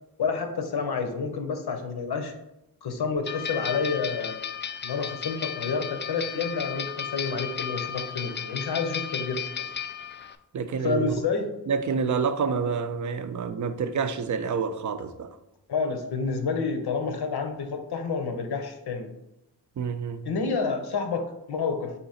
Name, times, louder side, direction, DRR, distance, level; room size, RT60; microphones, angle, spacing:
voice 1, 0.2-2.3 2.8-4.4 4.8-9.7 10.8-11.5 15.7-19.1 20.2-21.9, left 5 dB, 70° left, 0.7 m, -29 dB
sound 1, 3.2-10.3, left 8 dB, 30° left, 0.3 m, -34 dB
voice 2, 10.5-11.1 11.7-15.4 19.8-20.3, right 5 dB, 50° right, 0.5 m, -28 dB
3.7 x 2.8 x 4.1 m
cardioid pair, 40°, 40 cm